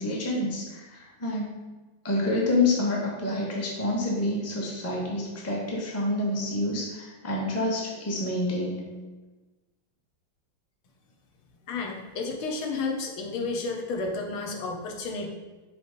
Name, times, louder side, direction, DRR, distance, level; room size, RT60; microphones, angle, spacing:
voice 1, 0.0-1.6 2.0-8.9, left 2 dB, 10° left, -3 dB, 0.6 m, -28 dB
voice 2, 11.7-15.3, left 3 dB, 80° left, 1 dB, 1.7 m, -31 dB
6.7 x 3.4 x 5.2 m, 1.2 s
omnidirectional pair, 2.4 m